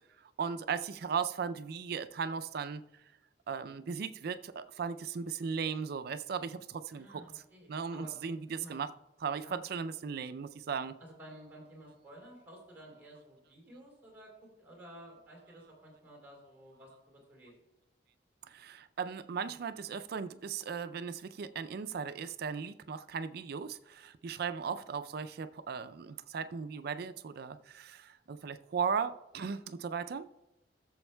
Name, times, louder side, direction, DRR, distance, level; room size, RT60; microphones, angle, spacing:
voice 1, 0.4-2.8 3.5-7.2 7.7-8.9 9.2-11.0 18.5-30.3, right 6 dB, 60° right, 0.4 m, -37 dB
voice 2, 5.2-5.6 6.9-8.1 8.5-8.8 9.3-9.6 11.0-17.5 24.6-24.7, right 1 dB, 10° right, 3.2 m, -53 dB
17.5 x 7.1 x 2.2 m
head